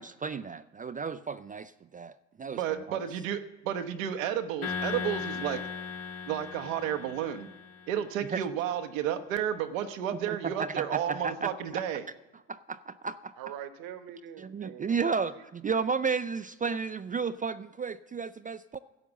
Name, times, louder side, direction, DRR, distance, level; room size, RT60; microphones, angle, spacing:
voice 1, 0.0-2.1 2.4-2.6 2.9-3.0 8.3-8.4 10.2-11.8 12.5-13.3 14.4-15.3 15.6-18.8, right 5 dB, 20° right, 12 dB, 0.4 m, -33 dB
voice 2, 2.5-5.6 6.3-7.5 7.9-12.1, right 9 dB, 85° right, 7 dB, 1.0 m, -32 dB
sound 1, 4.6-8.1, left 6 dB, 75° left, 1.8 m, -37 dB
voice 3, 13.4-15.4, right 10 dB, 65° right, 10 dB, 1.2 m, -43 dB
12.0 x 7.7 x 7.1 m, 1.0 s
hypercardioid pair, 65°, 39 cm